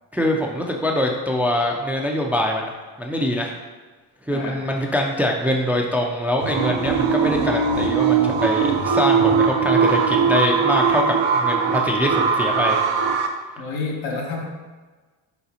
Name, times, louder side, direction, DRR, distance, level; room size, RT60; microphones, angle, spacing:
voice 1, 0.1-2.7 3.0-3.5 4.2-12.8, left 1 dB, 5° right, 0 dB, 0.4 m, -23 dB
voice 2, 4.3-4.6 13.6-14.4, left 3 dB, 75° left, -1 dB, 1.0 m, -29 dB
sound 1, 6.4-13.3, right 6 dB, 65° right, 0.6 m, -20 dB
4.0 x 3.9 x 2.8 m, 1.4 s
supercardioid pair, 65°, 46 cm